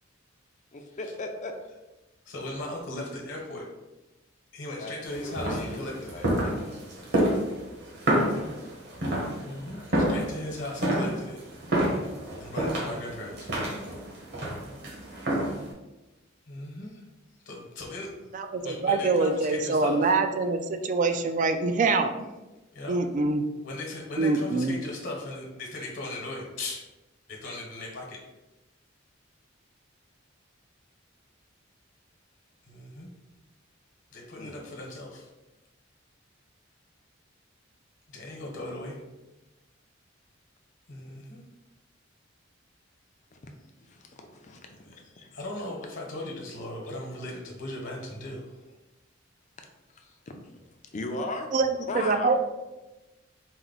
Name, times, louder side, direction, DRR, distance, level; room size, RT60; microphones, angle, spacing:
voice 1, 0.7-1.6 4.8-4.9 5.2-6.8 34.4-34.6 43.3-43.5 43.8-44.7 45.0-45.3 49.9-50.6 50.9-51.5 51.9-52.4, left 2 dB, 40° left, 4 dB, 0.5 m, -38 dB
voice 2, 2.2-3.6 4.5-6.2 9.4-11.4 12.4-13.5 16.5-17.0 17.4-18.3 18.6-20.1 22.7-23.0 23.6-26.8 27.3-28.2 32.7-33.1 34.1-35.3 38.1-39.0 40.9-41.4 44.9-45.0 45.3-48.5, left 1 dB, 65° left, -2 dB, 1.1 m, -38 dB
sound 1, 5.1-15.7, right 1 dB, 60° right, 1.2 m, -29 dB
voice 3, 18.3-22.3 22.9-23.4 24.2-24.8 51.5-51.7 51.9-52.4, right 3 dB, 40° right, 8 dB, 0.3 m, -25 dB
4.3 x 2.2 x 4.0 m, 1.0 s
head